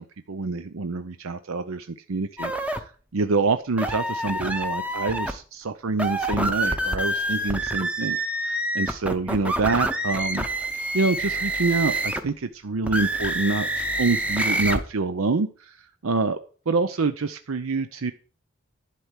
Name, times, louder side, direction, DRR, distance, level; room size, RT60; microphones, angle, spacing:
voice 1, 0.0-2.5 2.8-8.2 8.4-10.5 10.9-15.8 16.0-16.4 16.7-18.1, right 3 dB, 75° right, 10 dB, 0.6 m, -26 dB
sound 1, 2.4-2.8 3.8-5.3 5.9-12.3 12.8-14.8, right 1 dB, 5° right, 0.8 m, -27 dB
11.5 x 4.5 x 8.1 m, 0.40 s
head